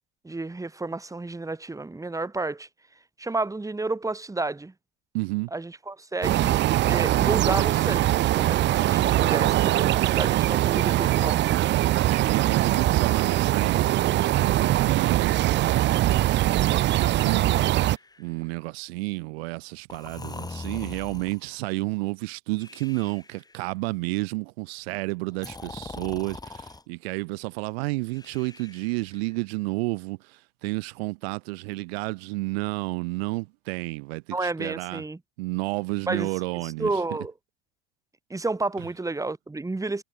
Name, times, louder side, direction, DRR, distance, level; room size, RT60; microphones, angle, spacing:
voice 1, 0.2-2.7 3.2-4.7 5.5-11.6 34.3-35.2 36.1-36.3 36.6-37.3 38.3-40.0, right 3 dB, 10° right, 2.1 m, -31 dB
voice 2, 5.1-5.5 12.1-16.3 16.9-17.8 18.2-35.0 35.4-36.9, right 25 dB, 70° right, 1.3 m, -31 dB
sound 1, 6.2-18.0, right 15 dB, 35° right, 0.5 m, -22 dB
Breathing, 16.9-18.5 19.9-21.5 22.6-23.6 25.3-26.8 28.1-29.3, left 3 dB, 10° left, 1.7 m, -42 dB
hypercardioid pair, 80°, 32 cm